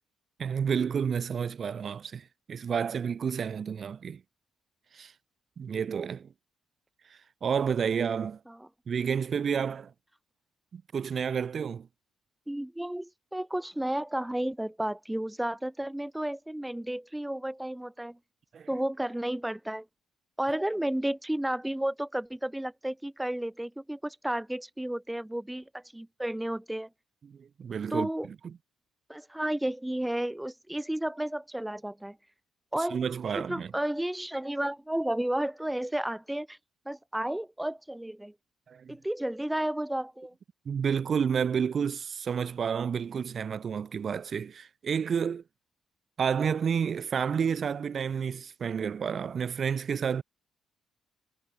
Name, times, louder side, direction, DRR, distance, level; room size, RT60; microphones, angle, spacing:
voice 1, 0.4-4.2 4.9-5.1 5.6-6.3 7.4-8.4 8.9-9.9 10.7-11.9 18.5-18.7 27.2-28.6 32.9-33.7 38.7-39.0 40.7-45.4 46.2-50.2, right 7 dB, 50° right, 2.1 m, -30 dB
voice 2, 12.5-18.2 18.7-19.9 20.4-26.9 27.9-28.3 29.1-32.2 32.7-33.0 33.4-36.6 36.9-38.3 38.9-40.3, right 1 dB, 5° right, 7.1 m, -32 dB
cardioid pair, 90°, 0 cm